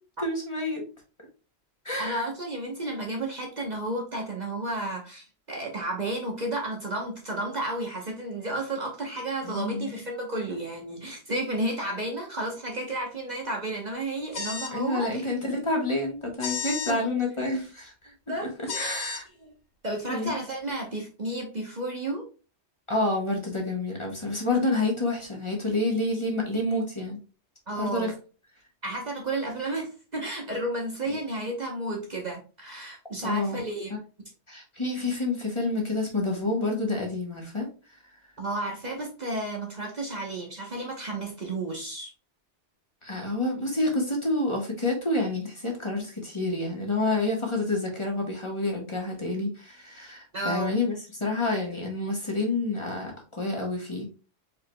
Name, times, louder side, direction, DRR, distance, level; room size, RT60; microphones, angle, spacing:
voice 1, 0.2-0.8 1.8-2.3 9.4-9.9 14.7-18.1 18.6-19.2 20.1-20.4 22.9-27.2 27.7-28.1 33.2-33.6 34.5-37.7 43.0-54.1, left 2 dB, 25° left, 1.5 m, -28 dB
voice 2, 2.0-15.3 16.9-17.0 18.3-19.1 19.4-19.5 19.8-22.3 27.7-28.1 28.8-33.9 38.4-42.1 50.3-50.7, right 2 dB, 40° right, 1.1 m, -32 dB
sound 1, 14.3-14.8 16.4-17.0 18.7-19.2, left 5 dB, 60° left, 1.1 m, -33 dB
4.7 x 4.6 x 2.2 m
omnidirectional pair, 1.2 m